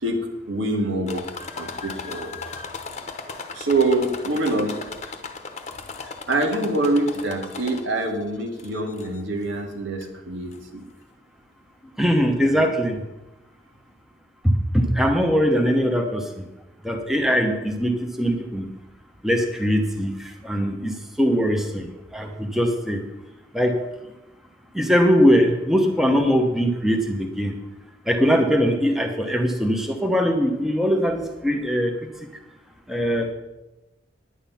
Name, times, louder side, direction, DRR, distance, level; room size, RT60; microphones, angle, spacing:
voice 1, 0.0-2.5 3.3-4.8 6.0-10.9 12.5-12.6, right 2 dB, 85° right, 2 dB, 1.9 m, -25 dB
sound 1, 1.1-8.1 8.6-9.2 10.0-10.1 10.5-10.6, left 4 dB, 35° left, 1.0 m, -37 dB
voice 2, 12.0-13.0 14.4-16.4 16.8-18.7 19.2-23.0 23.5-23.8 24.7-27.6 28.1-32.0 32.9-33.3, equal, ahead, 3 dB, 0.9 m, -21 dB
10.0 x 9.0 x 5.6 m, 0.99 s
head